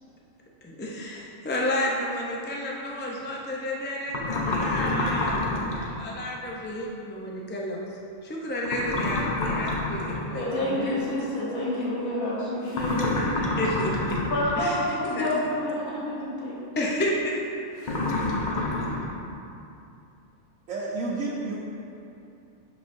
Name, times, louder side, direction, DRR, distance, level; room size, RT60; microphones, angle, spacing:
voice 1, 0.6-5.4 5.8-11.0 13.6-13.9 14.6-15.3 16.8-17.4, left 1 dB, 15° left, -3 dB, 0.3 m, -31 dB
sound 1, 4.1-5.9 8.6-10.3 12.7-14.7 17.8-19.0, left 2 dB, 40° left, 0.8 m, -28 dB
voice 2, 10.3-13.4 14.3-16.7, left 1 dB, 85° left, -6 dB, 1.7 m, -28 dB
voice 3, 20.7-21.6, right 3 dB, 70° right, -7 dB, 1.2 m, -30 dB
11.5 x 5.4 x 2.6 m, 2.7 s
omnidirectional pair, 1.4 m